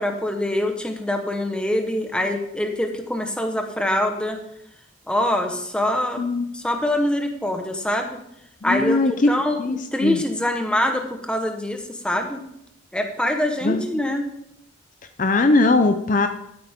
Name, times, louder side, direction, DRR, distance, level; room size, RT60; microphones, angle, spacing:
voice 1, 0.0-4.4 5.1-6.2 6.5-8.2 8.6-12.4 12.9-14.3, left 1 dB, 5° left, 4 dB, 1.1 m, -24 dB
voice 2, 6.2-6.5 8.6-9.1 9.6-10.2 13.6-13.8 15.2-16.3, left 3 dB, 40° left, 8 dB, 0.5 m, -20 dB
13.5 x 8.8 x 3.6 m, 0.77 s
head